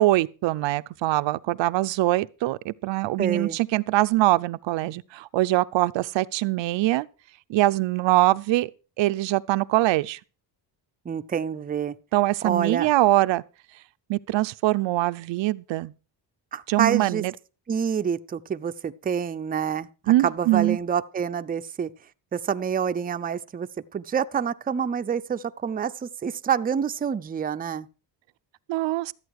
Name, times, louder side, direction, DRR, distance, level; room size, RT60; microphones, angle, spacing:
voice 1, 0.0-7.1 7.5-8.7 9.0-10.2 12.1-13.4 14.1-15.9 16.7-17.3 20.1-20.8 28.7-29.1, right 17 dB, 90° right, 0.6 m, -23 dB
voice 2, 3.2-3.6 11.1-11.9 12.4-12.9 16.5-17.2 17.7-19.9 20.2-21.9 22.3-27.9, right 7 dB, 20° right, 0.5 m, -27 dB
13.5 x 8.7 x 4.7 m
cardioid pair, 135°, 43 cm